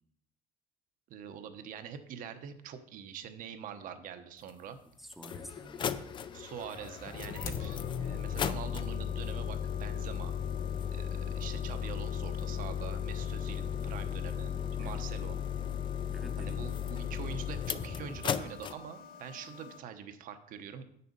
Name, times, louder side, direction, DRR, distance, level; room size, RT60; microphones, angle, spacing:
voice 1, 1.1-4.8 6.3-10.3 10.9-15.4 16.4-20.8, right 8 dB, 55° right, 9 dB, 1.0 m, -44 dB
sound 1, 4.5-4.6 5.1-18.7, left 8 dB, 30° left, 0.4 m, -35 dB
voice 2, 5.0-6.3 14.8-15.0 16.1-16.6, equal, ahead, 7 dB, 0.7 m, -49 dB
sound 2, 6.2-19.8, left 7 dB, 60° left, 1.0 m, -51 dB
8.5 x 6.7 x 5.3 m, 0.72 s
cardioid pair, 140°, 16 cm